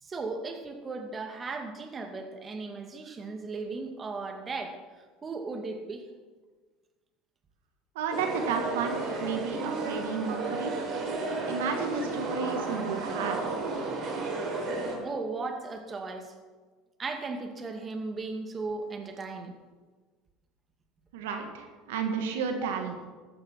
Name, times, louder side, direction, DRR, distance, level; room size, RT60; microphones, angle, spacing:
voice 1, 0.0-4.8 5.2-6.0 15.0-16.3 17.0-19.5 22.6-22.8, right 3 dB, 30° right, 4 dB, 2.3 m, -36 dB
voice 2, 8.0-10.8 11.5-13.6 21.1-23.0, right 5 dB, 80° right, 4 dB, 1.8 m, -32 dB
sound 1, 8.1-15.0, right 3 dB, 50° right, 5.5 m, -33 dB
15.0 x 13.5 x 4.6 m, 1.4 s
hypercardioid pair, 80°, 0 cm